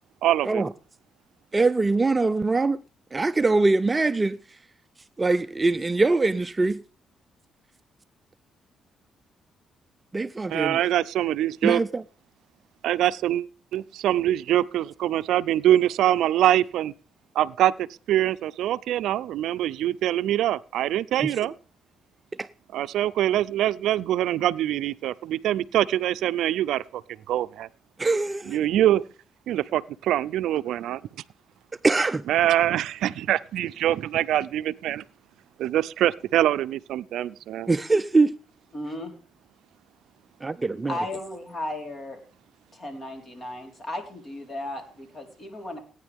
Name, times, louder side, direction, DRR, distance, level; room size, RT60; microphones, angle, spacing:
voice 1, 0.2-0.7 10.5-11.8 12.8-13.5 13.7-16.9 17.3-21.5 22.7-27.0 27.3-27.7 28.5-29.0 29.5-31.0 32.3-35.0 35.6-37.7, right 12 dB, 80° right, 0.5 m, -24 dB
voice 2, 1.5-2.8 3.1-4.4 5.2-6.8 10.1-10.8 11.6-12.0 22.3-22.5 28.0-28.6 31.8-32.2 37.7-38.3 40.4-40.9, right 3 dB, 25° right, 0.5 m, -23 dB
voice 3, 38.7-39.1 40.9-42.2 42.7-45.8, left 1 dB, 35° left, 4.2 m, -35 dB
18.0 x 9.8 x 3.6 m
cardioid pair, 90°, 0 cm